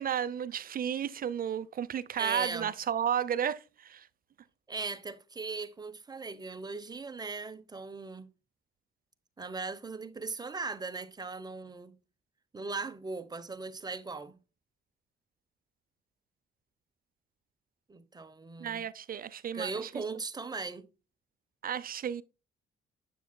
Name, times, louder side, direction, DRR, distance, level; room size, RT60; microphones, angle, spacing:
voice 1, 0.0-4.1 18.6-19.9 21.6-22.2, right 9 dB, 45° right, 0.6 m, -33 dB
voice 2, 2.2-2.7 4.7-8.3 9.4-11.9 12.5-14.3 17.9-18.9 19.5-20.9, right 4 dB, 20° right, 0.9 m, -38 dB
7.4 x 6.9 x 2.2 m
cardioid pair, 90°, 20 cm